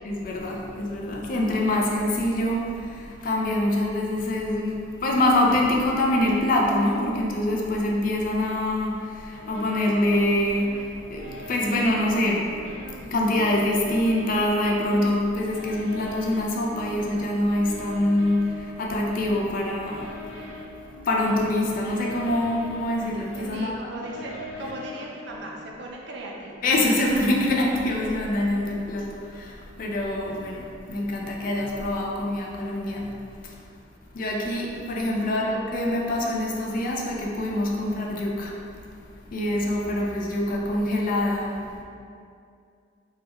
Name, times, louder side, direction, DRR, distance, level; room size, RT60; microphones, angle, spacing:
voice 1, 0.0-12.5 13.0-20.1 21.0-23.9 26.6-33.6 34.1-38.5 39.3-41.7, left 1 dB, 45° left, -1 dB, 0.4 m, -25 dB
sound 1, 9.4-25.6, left 1 dB, 70° left, 1.2 m, -41 dB
voice 2, 23.5-26.6 35.3-35.6, right 2 dB, 60° right, -1 dB, 0.4 m, -38 dB
3.2 x 2.2 x 2.9 m, 2.4 s
head